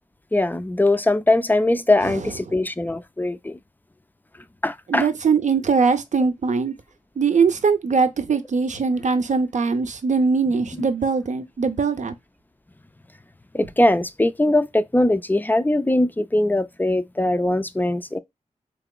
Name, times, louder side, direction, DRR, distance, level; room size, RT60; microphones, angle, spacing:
voice 1, 0.3-3.6 4.6-5.1 13.5-18.2, left 1 dB, 15° left, 0.4 m, -21 dB
voice 2, 2.0-2.6 4.9-6.7 7.2-12.1, right 5 dB, 65° right, 0.6 m, -21 dB
3.8 x 2.9 x 2.2 m
cardioid pair, 55°, 13 cm